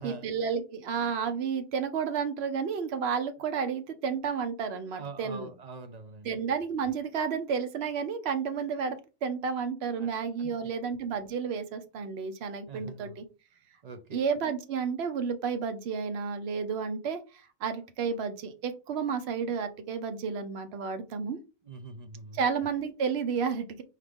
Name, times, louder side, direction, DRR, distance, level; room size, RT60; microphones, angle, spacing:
voice 1, 0.0-5.5 6.2-13.2 14.1-21.4 22.3-23.8, right 6 dB, 80° right, 0.9 m, -31 dB
voice 2, 5.0-6.3 10.0-10.1 10.4-10.6 12.7-13.2 13.8-14.0 21.7-22.4, right 4 dB, 50° right, 0.5 m, -43 dB
4.4 x 2.4 x 3.5 m
omnidirectional pair, 1.1 m